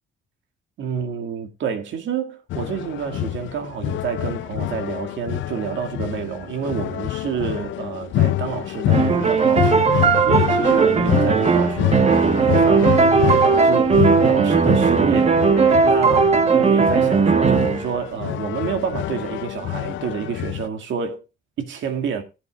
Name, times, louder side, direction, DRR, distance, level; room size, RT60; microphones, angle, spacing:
voice 1, 0.8-15.4 15.8-21.2 21.6-22.2, right 7 dB, 70° right, 2.1 m, -28 dB
sound 1, 2.5-20.7, left 15 dB, 75° left, 0.5 m, -26 dB
sound 2, 8.9-17.9, right 5 dB, 35° right, 1.3 m, -17 dB
17.5 x 8.3 x 2.3 m
cardioid pair, 90°, 20 cm